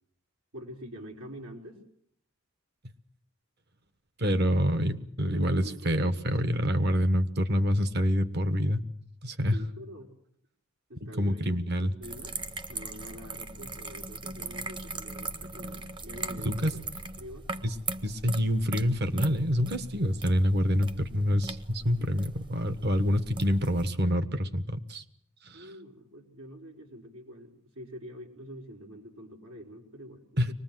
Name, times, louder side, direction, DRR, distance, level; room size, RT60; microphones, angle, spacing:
voice 1, 0.5-1.8 4.8-4.9 5.2-6.1 9.5-10.1 10.9-11.5 11.8-12.4 12.7-16.8 17.2-17.5 25.5-30.5, equal, 90° right, 1 dB, 4.7 m, -46 dB
voice 2, 4.2-8.8 9.2-9.6 11.0-11.9 16.4-16.7 17.6-17.7 18.0-25.0 25.4-25.6 30.4-30.5, equal, 50° right, 12 dB, 1.3 m, -27 dB
sound 1, 12.0-23.9, right 3 dB, 20° right, 1.0 m, -39 dB
24.0 x 20.0 x 7.6 m, 0.65 s
head